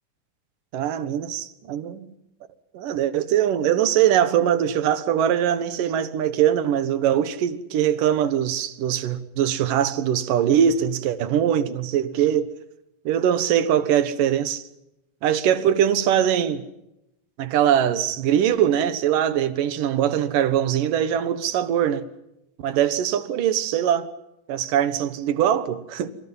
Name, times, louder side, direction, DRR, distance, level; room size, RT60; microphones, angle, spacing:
voice 1, 0.7-2.1 2.7-12.5 13.1-14.6 15.2-16.6 17.4-22.1 22.6-24.1 24.5-26.1, right 10 dB, 75° right, 2.9 m, -22 dB
26.5 x 26.0 x 5.6 m
omnidirectional pair, 3.9 m